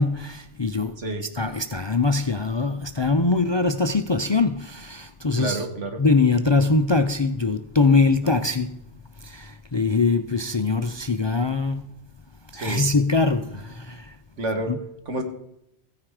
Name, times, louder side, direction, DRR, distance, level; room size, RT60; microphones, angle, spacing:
voice 1, 0.0-0.9 1.3-5.6 6.0-8.8 9.2-11.9 12.5-14.1 14.7-14.8, left 3 dB, 40° left, 0.4 m, -22 dB
voice 2, 1.0-1.3 5.4-6.0 8.2-8.4 12.5-12.9 14.4-14.7 15.1-15.2, right 2 dB, 90° right, 1.9 m, -29 dB
15.0 x 9.5 x 4.9 m
omnidirectional pair, 1.2 m